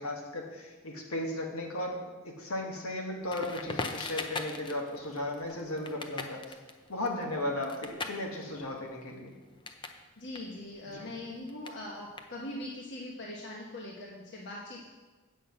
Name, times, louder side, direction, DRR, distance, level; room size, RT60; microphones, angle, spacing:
voice 1, 0.0-6.4 6.9-9.4 10.9-11.1, left 1 dB, 75° left, 1 dB, 1.8 m, -36 dB
Crackle, 3.3-10.0 10.3-12.7, left 3 dB, 20° left, 0.6 m, -41 dB
voice 2, 10.2-14.9, left 1 dB, 55° left, -3 dB, 1.3 m, -41 dB
8.3 x 5.7 x 7.9 m, 1.2 s
head